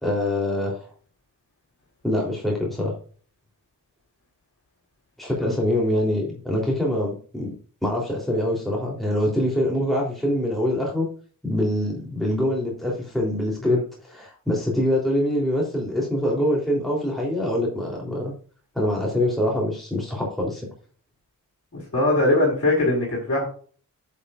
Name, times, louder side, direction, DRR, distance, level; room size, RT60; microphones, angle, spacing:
voice 1, 0.0-0.8 2.0-2.9 5.2-7.5 7.8-11.1 11.4-18.3 18.7-20.6, left 1 dB, ahead, -3 dB, 3.4 m, -24 dB
voice 2, 21.7-23.5, left 1 dB, 40° left, -1 dB, 4.2 m, -21 dB
11.0 x 7.4 x 2.5 m, 0.43 s
cardioid pair, 75°, 35 cm